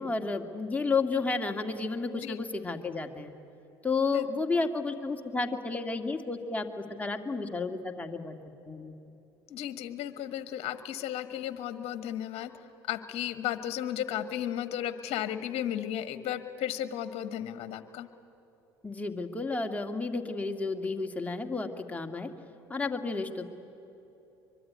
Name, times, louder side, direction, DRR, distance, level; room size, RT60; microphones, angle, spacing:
voice 1, 0.0-3.3 3.8-8.4 8.7-8.9 18.8-22.3 22.7-23.5, left 4 dB, 10° left, 3 dB, 2.3 m, -32 dB
voice 2, 9.5-12.5 12.9-18.1, left 11 dB, 55° left, 11 dB, 1.5 m, -34 dB
24.0 x 23.0 x 9.8 m, 3.0 s
hypercardioid pair, 70°, 13 cm